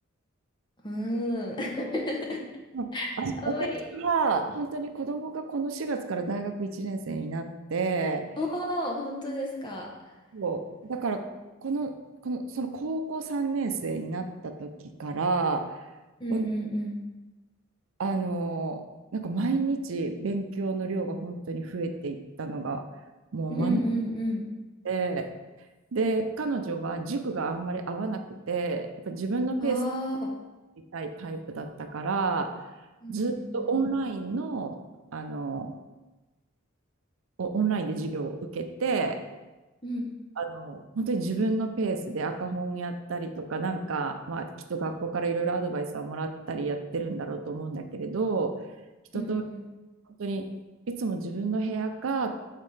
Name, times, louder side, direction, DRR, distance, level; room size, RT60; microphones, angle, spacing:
voice 1, 0.8-2.4 2.9-3.1 3.4-3.8 8.4-9.9 16.2-17.0 23.5-24.5 29.6-30.3 33.0-33.7 39.8-40.1 49.1-49.7, equal, 20° left, -1 dB, 0.8 m, -31 dB
voice 2, 3.2-3.6 3.9-8.3 10.3-10.6 10.9-11.3 11.6-11.9 12.2-14.7 15.0-15.7 16.3-16.5 18.0-18.8 19.1-22.8 23.3-23.8 24.8-25.3 25.9-29.8 30.9-32.5 33.1-34.8 35.1-35.7 37.4-39.2 40.4-48.6 49.1-49.4 50.2-50.5 50.9-52.4, right 3 dB, 70° right, 6 dB, 0.5 m, -30 dB
7.5 x 4.1 x 3.3 m, 1.1 s
head